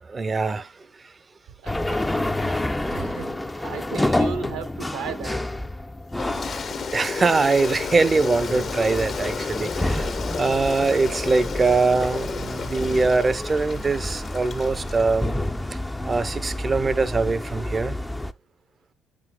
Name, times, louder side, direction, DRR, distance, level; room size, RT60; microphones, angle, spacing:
voice 1, 0.1-0.7 6.9-15.4 15.7-15.8 16.1-18.0, right 3 dB, 30° right, 0.7 m, -23 dB
voice 2, 1.6-2.0 2.4-2.6 2.9-5.4, right 5 dB, 70° right, 1.2 m, -35 dB
sound 1, 1.7-18.3, left 1 dB, 10° left, 0.5 m, -29 dB
Toilet flush, 6.2-15.5, left 6 dB, 45° left, 0.8 m, -33 dB
9.2 x 6.3 x 2.2 m
hypercardioid pair, 55°, 0 cm